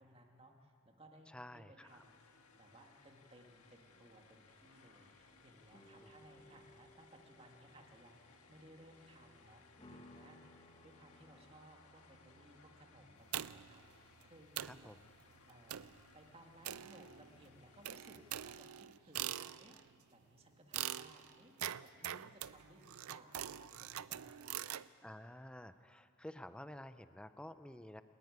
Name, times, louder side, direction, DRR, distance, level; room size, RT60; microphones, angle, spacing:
voice 1, 0.0-10.4 10.8-14.9 15.4-19.8 20.1-21.5 21.8-24.6, right 1 dB, 25° right, 3 dB, 1.8 m, -61 dB
voice 2, 1.3-2.0 6.0-6.1 14.6-15.0 25.0-28.0, left 1 dB, 5° left, 11 dB, 0.4 m, -51 dB
sound 1, 1.9-18.4, left 3 dB, 90° left, 1.6 m, -65 dB
sound 2, 3.9-12.7, left 1 dB, 25° left, 1.2 m, -64 dB
sound 3, 13.3-13.8 14.2-14.3 14.6-14.9 15.7-16.0 16.6-17.4 17.8-19.9 20.7-24.9, right 12 dB, 80° right, 0.5 m, -43 dB
29.5 x 10.0 x 9.5 m, 2.8 s
head